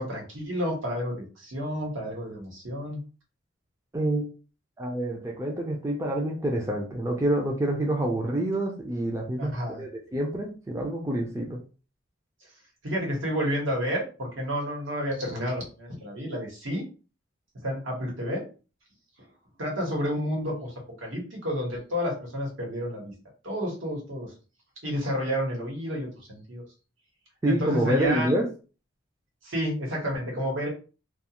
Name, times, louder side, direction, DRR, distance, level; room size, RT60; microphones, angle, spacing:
voice 1, 0.0-3.0 9.4-9.8 12.8-16.8 17.6-18.4 19.6-23.1 23.4-24.3 24.8-26.6 27.4-28.3 29.4-30.7, equal, 80° right, -1 dB, 1.2 m, -30 dB
voice 2, 3.9-4.3 4.8-11.6 27.4-28.5, right 1 dB, 15° right, 0 dB, 0.4 m, -27 dB
2.4 x 2.3 x 2.8 m, 0.34 s
head